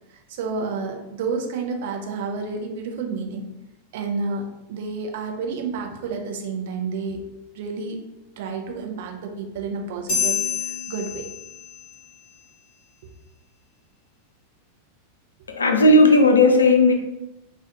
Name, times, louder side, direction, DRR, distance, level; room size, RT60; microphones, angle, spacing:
voice 1, 0.3-3.5 3.9-7.2 7.5-8.0 8.4-11.3 13.0-13.1, right 4 dB, 55° right, 2 dB, 0.4 m, -30 dB
sound 1, 10.1-12.0, left 6 dB, 40° left, 0.7 m, -27 dB
voice 2, 15.5-16.9, left 2 dB, 75° left, 4 dB, 0.3 m, -15 dB
2.3 x 2.1 x 2.7 m, 0.94 s
figure-of-eight pair, 90°, 0 cm